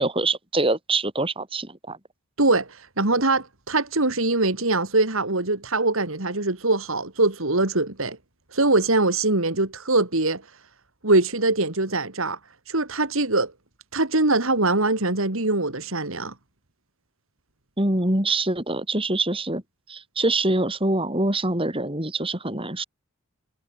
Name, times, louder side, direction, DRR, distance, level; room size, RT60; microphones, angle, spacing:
voice 1, 0.0-2.0 17.8-19.6 19.9-22.8, right 2 dB, 25° right, 4.6 m, -24 dB
voice 2, 2.4-8.2 8.5-10.4 11.0-12.4 12.7-13.5 13.9-16.3, right 2 dB, 70° right, 2.8 m, -22 dB
head